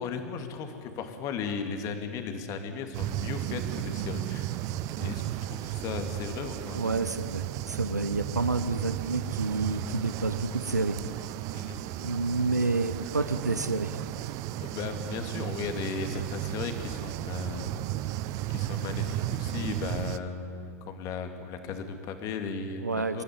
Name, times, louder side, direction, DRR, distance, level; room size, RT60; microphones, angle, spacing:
voice 1, 0.0-4.6 5.0-6.8 11.5-11.8 14.6-17.9 18.5-23.2, left 5 dB, 40° left, 7 dB, 2.4 m, -36 dB
sound 1, 2.9-20.2, right 13 dB, 40° right, 0.7 m, -34 dB
voice 2, 6.7-11.0 12.0-14.0 22.8-23.2, right 3 dB, 90° right, 12 dB, 0.9 m, -29 dB
25.0 x 13.0 x 9.7 m, 2.3 s
figure-of-eight pair, 100°, 9 cm